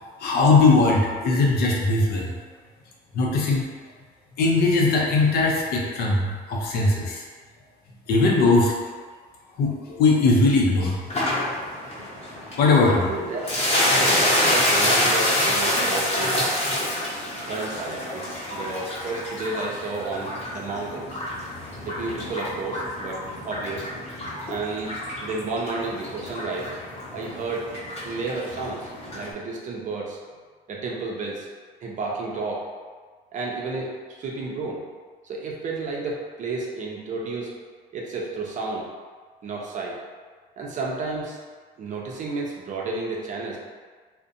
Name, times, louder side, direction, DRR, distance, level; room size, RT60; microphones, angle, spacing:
voice 1, 0.2-2.3 3.1-3.7 4.4-7.2 8.1-8.7 9.6-11.0 12.6-13.0, left 3 dB, 70° left, -2 dB, 0.6 m, -19 dB
sound 1, 11.1-29.3, left 1 dB, 35° left, 0.9 m, -27 dB
voice 2, 12.9-13.4 13.8-16.5 17.5-21.2 21.8-24.1 24.5-26.7 27.1-27.7 28.0-30.2 30.7-31.5 31.8-32.7 33.3-34.8 35.2-37.5 37.9-38.9 39.4-40.0 40.6-41.4 41.8-43.6, right 3 dB, 45° right, -2 dB, 0.5 m, -31 dB
2.5 x 2.1 x 2.5 m, 1.5 s
cardioid pair, 110°, 17 cm